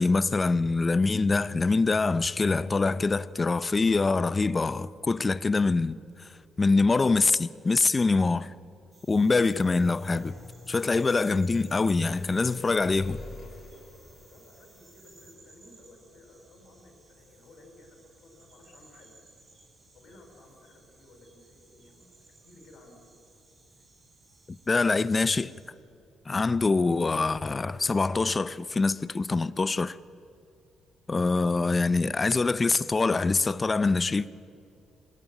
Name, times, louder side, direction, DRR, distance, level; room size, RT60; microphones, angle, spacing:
voice 1, 0.0-6.3 6.6-8.5 9.1-10.4 10.7-13.2 24.5-25.5 26.3-30.0 31.1-34.3, left 3 dB, 25° left, 0.8 m, -24 dB
sound 1, 8.9-25.7, right 3 dB, 35° right, 5.2 m, -59 dB
sound 2, 10.1-21.4 22.2-22.3 23.3-23.4 23.6-23.7, left 3 dB, 55° left, 4.4 m, -48 dB
voice 2, 14.3-19.2 19.9-23.0, left 2 dB, 75° left, 5.9 m, -55 dB
26.0 x 20.5 x 9.1 m
cardioid pair, 90°, 0 cm